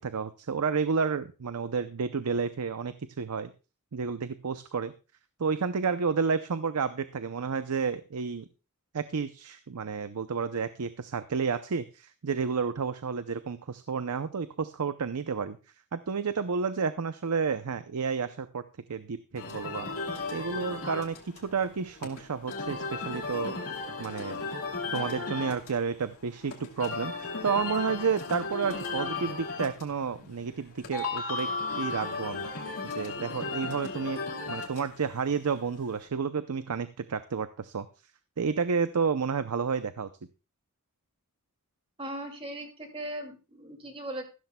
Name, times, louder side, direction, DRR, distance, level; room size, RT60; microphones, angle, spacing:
voice 1, 0.0-3.5 3.9-4.9 5.4-8.5 8.9-15.6 15.9-18.6 18.9-19.9 20.3-23.5 24.0-24.4 24.9-31.5 31.7-32.5 33.0-34.2 34.5-37.9 38.4-40.1, right 5 dB, 85° right, 12 dB, 0.6 m, -31 dB
sound 1, 19.4-36.0, left 3 dB, 70° left, 2.6 m, -35 dB
voice 2, 42.0-44.2, right 1 dB, 25° right, 3 dB, 2.4 m, -38 dB
14.5 x 12.5 x 2.3 m, 0.32 s
head